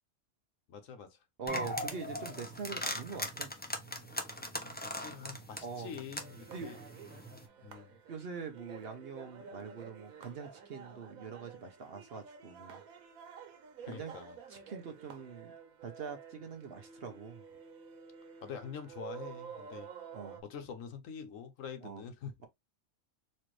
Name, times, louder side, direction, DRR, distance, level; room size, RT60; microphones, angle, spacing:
voice 1, 0.7-1.2 4.8-6.8 7.6-7.9 13.8-14.4 18.4-19.9 20.4-22.5, left 7 dB, 75° left, 1.1 m, -45 dB
voice 2, 1.4-3.5 5.6-5.9 6.5-6.7 8.1-12.8 13.8-14.1 14.5-15.5 15.8-17.4 20.1-20.4 21.8-22.0, right 5 dB, 55° right, 0.8 m, -43 dB
sound 1, 1.5-7.5, left 1 dB, 15° left, 0.3 m, -40 dB
Carnatic varnam by Prasanna in Abhogi raaga, 6.2-20.4, right 7 dB, 90° right, 1.3 m, -51 dB
4.3 x 2.5 x 3.1 m
omnidirectional pair, 1.4 m